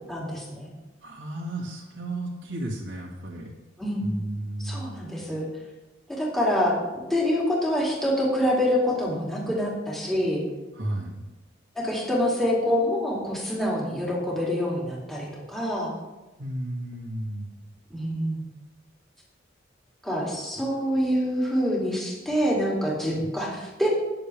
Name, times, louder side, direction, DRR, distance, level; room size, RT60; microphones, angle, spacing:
voice 1, 0.1-0.7 3.8-4.0 4.6-5.5 6.1-6.8 7.1-10.4 11.7-15.9 17.9-18.4 20.0-23.9, equal, ahead, -4 dB, 2.6 m, -26 dB
voice 2, 1.0-3.5 4.0-5.0 10.7-11.2 16.4-17.5 23.2-23.3, right 1 dB, 90° right, -4 dB, 2.1 m, -33 dB
18.5 x 6.9 x 3.4 m, 1.1 s
head